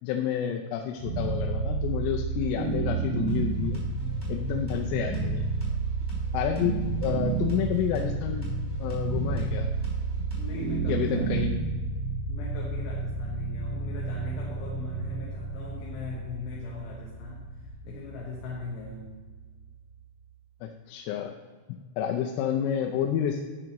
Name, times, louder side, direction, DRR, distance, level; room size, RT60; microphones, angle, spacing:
voice 1, 0.0-3.8 4.3-5.5 6.3-8.5 8.8-9.7 10.9-11.6 20.6-21.3 22.0-23.4, left 9 dB, 90° left, 2 dB, 3.3 m, -29 dB
sound 1, 1.0-20.0, right 4 dB, 75° right, 2.3 m, -31 dB
sound 2, 3.3-10.8, right 4 dB, 5° right, 2.3 m, -44 dB
voice 2, 10.3-11.3 12.3-17.6 17.8-19.1, left 4 dB, 70° left, -2 dB, 3.0 m, -40 dB
12.5 x 10.0 x 3.0 m, 1.4 s
omnidirectional pair, 5.7 m